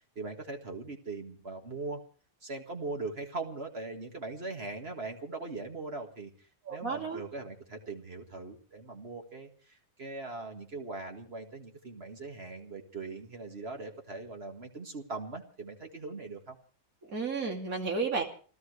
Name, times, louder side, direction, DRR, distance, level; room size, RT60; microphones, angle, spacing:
voice 1, 0.2-2.0 2.4-16.6, right 3 dB, 45° right, 3 dB, 2.1 m, -40 dB
voice 2, 6.6-7.2 17.1-18.2, right 4 dB, 70° right, 1 dB, 3.2 m, -32 dB
28.5 x 13.5 x 3.3 m, 0.41 s
omnidirectional pair, 1.5 m